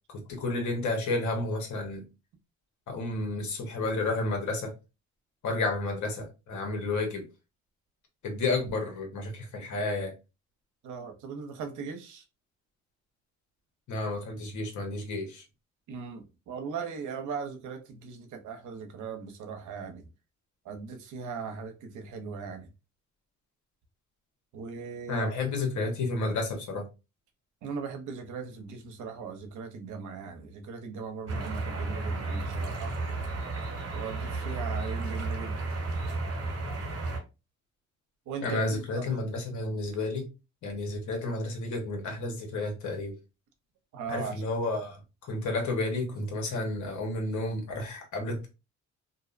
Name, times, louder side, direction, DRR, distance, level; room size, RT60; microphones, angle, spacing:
voice 1, 0.1-2.0 2.9-4.7 5.4-7.2 8.2-10.1 13.9-15.4 25.1-26.9 38.4-40.3 40.6-43.1 44.1-48.5, left 2 dB, 70° left, 1.0 m, -31 dB
voice 2, 10.8-12.2 15.9-20.0 20.6-22.7 24.5-25.3 27.6-32.9 33.9-35.6 38.3-39.2 43.9-44.3, right 5 dB, 75° right, 0.6 m, -39 dB
sound 1, 31.3-37.2, right 3 dB, 55° right, 0.9 m, -33 dB
2.5 x 2.0 x 2.4 m
cardioid pair, 90°, 30 cm